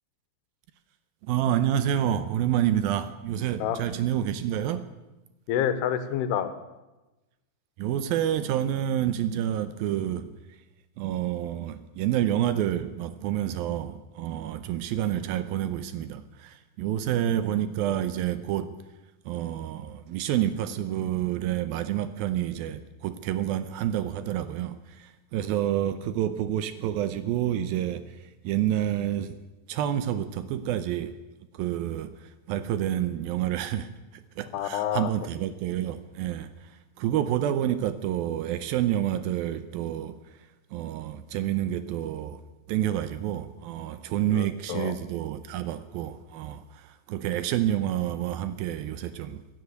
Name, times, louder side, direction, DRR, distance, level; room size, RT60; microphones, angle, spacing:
voice 1, 1.2-4.9 7.8-10.3 11.0-18.7 19.3-28.2 28.4-29.4 29.7-31.1 31.5-40.2 40.7-42.4 42.7-49.4, right 11 dB, 80° right, 12 dB, 2.3 m, -28 dB
voice 2, 5.5-6.5 34.5-35.1 44.3-45.0, left 10 dB, 90° left, 11 dB, 3.1 m, -28 dB
16.5 x 10.5 x 8.0 m, 1.0 s
omnidirectional pair, 4.6 m